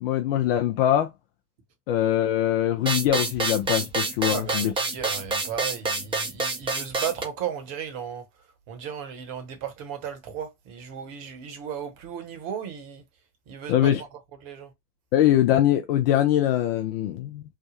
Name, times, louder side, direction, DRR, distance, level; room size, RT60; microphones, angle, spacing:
voice 1, 0.0-1.1 1.9-4.7 13.7-14.0 15.1-17.4, left 11 dB, 40° left, 0.4 m, -22 dB
sound 1, 2.9-7.2, right 3 dB, 10° right, 0.6 m, -27 dB
voice 2, 4.3-8.3 8.7-13.0 13.5-14.1 14.4-14.7, right 8 dB, 40° right, 1.2 m, -35 dB
3.4 x 2.2 x 3.0 m
hypercardioid pair, 95°, 49 cm